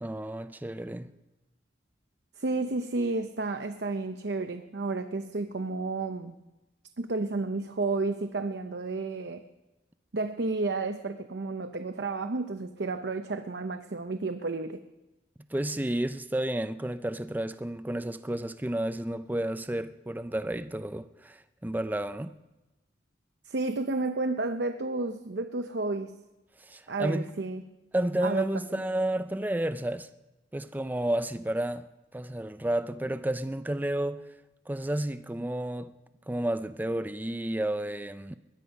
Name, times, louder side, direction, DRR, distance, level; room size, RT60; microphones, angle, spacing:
voice 1, 0.0-1.1 15.5-22.4 26.6-27.3 27.9-30.1 30.5-31.8 32.1-34.2 34.7-35.9 36.3-38.4, right 1 dB, 10° right, 0.4 m, -31 dB
voice 2, 2.4-6.3 7.0-9.4 10.1-14.8 23.5-26.1 26.9-27.6 28.2-28.8, right 3 dB, 60° right, 0.7 m, -31 dB
21.0 x 11.5 x 5.4 m
head